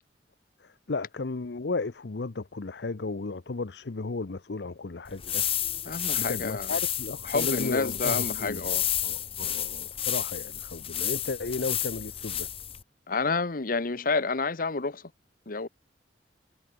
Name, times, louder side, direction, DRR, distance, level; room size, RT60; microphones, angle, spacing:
voice 1, 0.6-5.5 6.1-8.6 9.0-12.5, left 3 dB, 70° left, 0.7 m, -34 dB
sound 1, 5.1-12.8, left 10 dB, 35° left, 1.7 m, -31 dB
voice 2, 5.9-6.7 7.3-8.8 9.5-9.6 13.1-15.0 15.5-15.7, left 4 dB, 55° left, 1.1 m, -29 dB
head